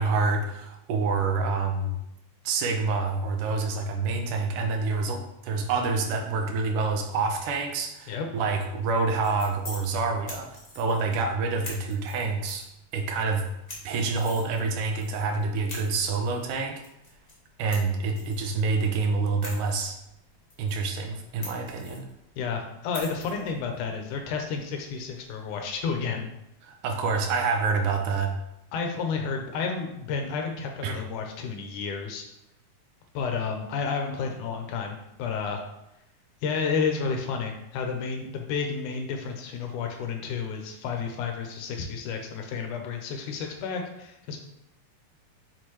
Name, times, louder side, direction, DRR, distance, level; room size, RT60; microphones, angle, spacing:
voice 1, 0.0-2.0 2.5-10.5 10.8-12.7 12.9-13.5 13.8-16.8 17.6-20.0 20.6-22.0 26.6-28.3 30.8-31.0, right 4 dB, 80° right, 3 dB, 2.2 m, -27 dB
sound 1, 8.9-25.8, left 1 dB, 30° left, 0.7 m, -47 dB
voice 2, 22.4-26.3 28.7-32.2 33.1-35.6 36.4-44.4, left 5 dB, 75° left, 3 dB, 2.1 m, -31 dB
6.4 x 5.0 x 3.0 m, 0.84 s
omnidirectional pair, 3.9 m